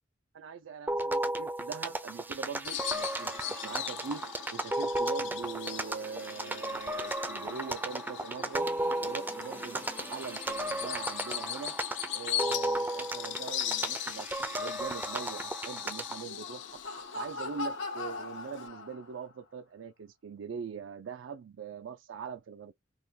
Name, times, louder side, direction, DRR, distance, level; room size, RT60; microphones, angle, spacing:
voice 1, 0.3-4.2 4.5-8.7 9.0-11.7 12.1-16.8 17.1-22.7, right 6 dB, 85° right, 0.4 m, -42 dB
sound 1, 0.9-16.2, right 1 dB, 10° right, 0.4 m, -35 dB
Bird vocalization bird call bird song, 2.6-18.7, left 11 dB, 65° left, 0.4 m, -40 dB
Laughter, 16.1-19.3, left 3 dB, 85° left, 1.2 m, -40 dB
3.6 x 2.2 x 2.7 m
head